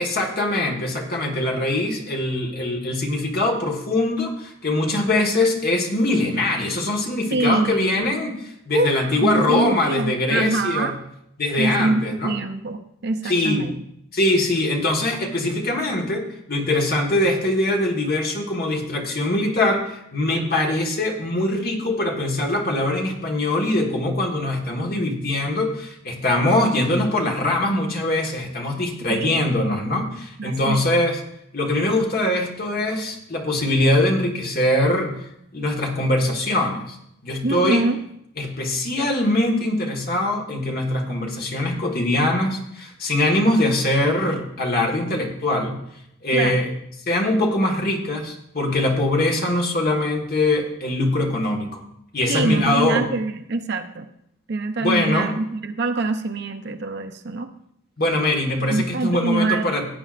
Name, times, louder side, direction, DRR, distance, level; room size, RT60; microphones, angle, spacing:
voice 1, 0.0-10.9 11.4-12.3 13.2-13.7 14.1-31.2 31.5-35.2 35.5-37.0 37.2-37.8 38.4-45.8 46.2-46.7 47.1-51.8 52.1-53.0 54.8-55.3 58.0-59.9, left 1 dB, 45° left, 1 dB, 1.6 m, -22 dB
voice 2, 7.3-8.0 8.7-11.0 11.6-13.8 29.1-29.5 30.4-31.0 37.4-38.0 46.3-46.6 52.3-54.1 54.5-57.5 58.6-59.7, right 3 dB, 50° right, 8 dB, 0.6 m, -24 dB
16.5 x 9.1 x 2.5 m, 0.75 s
head